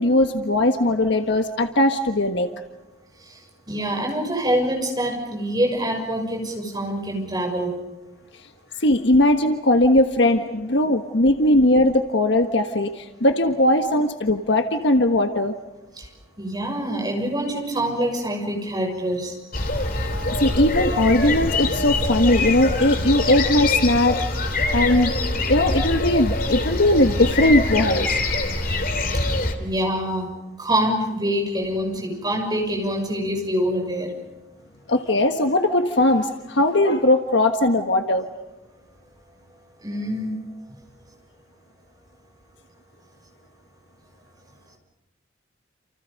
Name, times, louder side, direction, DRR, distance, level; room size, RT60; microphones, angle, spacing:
voice 1, 0.0-2.5 8.8-15.5 19.9-20.1 20.4-25.2 25.5-28.1 34.9-38.3, left 1 dB, 65° left, 6 dB, 1.5 m, -19 dB
voice 2, 3.7-7.7 16.0-16.1 16.4-19.3 29.1-34.1 39.8-40.4, equal, 20° right, 1 dB, 6.7 m, -25 dB
sound 1, 19.5-29.5, left 2 dB, 45° left, 3.1 m, -24 dB
29.0 x 29.0 x 5.3 m, 1.1 s
head